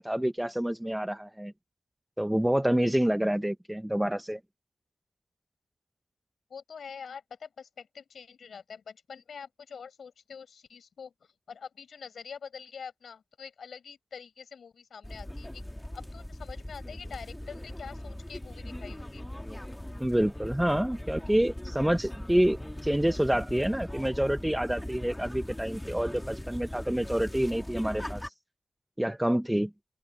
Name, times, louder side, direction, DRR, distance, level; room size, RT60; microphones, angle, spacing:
voice 1, 0.0-1.5 2.2-4.4 20.0-28.2 29.0-29.7, right 1 dB, 10° right, 0.6 m, -27 dB
voice 2, 6.5-11.1 11.5-15.6 15.9-19.2, left 6 dB, 90° left, 7.0 m, -45 dB
sound 1, 15.0-28.3, left 1 dB, 10° left, 2.0 m, -40 dB
open air
wide cardioid pair, 70°, 0 cm